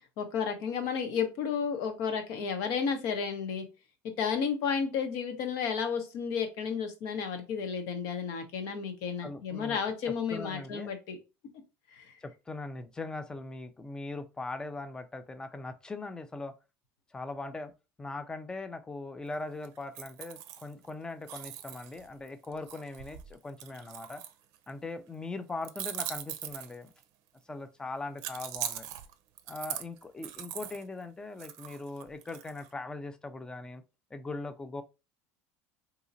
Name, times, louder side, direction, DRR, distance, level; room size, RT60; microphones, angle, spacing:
voice 1, 0.2-3.7 4.0-11.2 11.9-12.2, left 6 dB, 65° left, 1.0 m, -32 dB
voice 2, 9.2-9.8 10.1-10.9 12.2-16.5 17.1-17.7 18.0-24.2 24.7-26.9 27.5-28.9 29.5-33.8 34.1-34.8, left 3 dB, 15° left, 0.4 m, -40 dB
sound 1, 19.6-20.9 21.3-24.7 25.6-27.0 28.2-30.9 31.4-32.7, right 12 dB, 65° right, 0.5 m, -41 dB
3.8 x 2.8 x 2.6 m
supercardioid pair, 110°, 6 cm